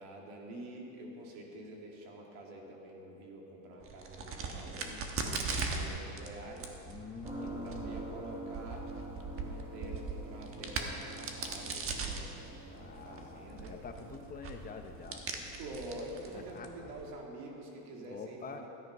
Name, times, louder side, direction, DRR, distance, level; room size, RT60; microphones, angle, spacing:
voice 1, 0.0-6.8 7.4-8.8 9.4-13.8 15.6-18.7, right 1 dB, 70° right, 0 dB, 2.6 m, -47 dB
Crack, 3.8-17.1, right 4 dB, 35° right, 1.3 m, -40 dB
voice 2, 6.9-8.0 12.7-15.5 16.3-16.9 18.0-18.6, left 6 dB, 20° left, 5 dB, 0.9 m, -47 dB
sound 1, 7.2-16.6, right 2 dB, 15° right, 1.3 m, -48 dB
13.5 x 10.0 x 5.4 m, 2.9 s
supercardioid pair, 130°, 39 cm